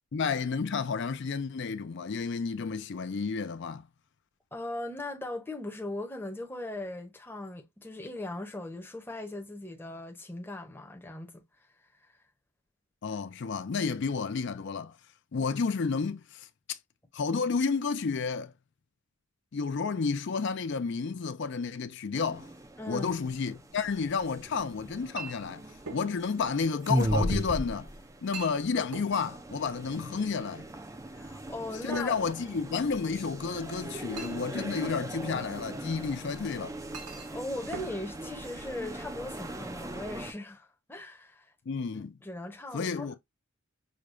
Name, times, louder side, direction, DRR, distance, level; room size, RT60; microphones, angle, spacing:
voice 1, 0.1-3.9 13.0-14.9 15.3-16.8 17.1-18.5 19.5-22.5 22.9-25.7 25.9-27.9 28.2-30.7 31.8-36.8 41.7-42.2 42.7-43.2, left 5 dB, 55° left, 0.4 m, -31 dB
voice 2, 4.5-11.4 22.8-23.1 31.1-32.2 37.3-41.5 42.2-43.2, left 1 dB, 10° left, 0.7 m, -39 dB
sound 1, 22.1-40.3, right 1 dB, 15° right, 0.4 m, -38 dB
Chink clink, 23.7-39.2, right 4 dB, 85° right, 0.9 m, -48 dB
6.4 x 2.2 x 2.5 m
head